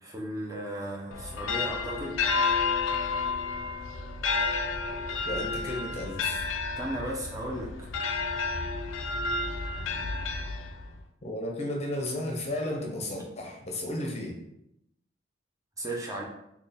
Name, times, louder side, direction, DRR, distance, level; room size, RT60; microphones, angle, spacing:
voice 1, 0.0-2.2 6.8-7.9 15.8-16.2, right 1 dB, 15° right, -2 dB, 0.6 m, -35 dB
sound 1, 1.1-11.0, left 4 dB, 85° left, 0.4 m, -31 dB
voice 2, 5.2-6.4 11.2-14.4, left 1 dB, 35° left, 0 dB, 0.6 m, -33 dB
4.3 x 2.3 x 3.4 m, 0.81 s
head